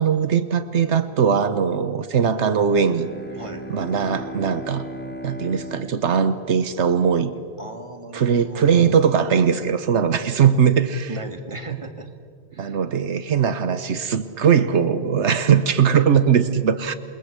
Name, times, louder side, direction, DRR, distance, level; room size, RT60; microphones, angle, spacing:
voice 1, 0.0-3.1 3.7-4.9 5.2-7.3 8.1-11.1 12.6-16.9, right 7 dB, 80° right, 11 dB, 1.2 m, -20 dB
Bowed string instrument, 2.6-7.4, equal, 10° left, 1.3 m, -37 dB
voice 2, 7.6-9.0 11.1-12.1 12.5-12.8, right 2 dB, 25° right, 5 dB, 2.1 m, -37 dB
28.0 x 21.5 x 8.1 m, 2.1 s
omnidirectional pair, 1.1 m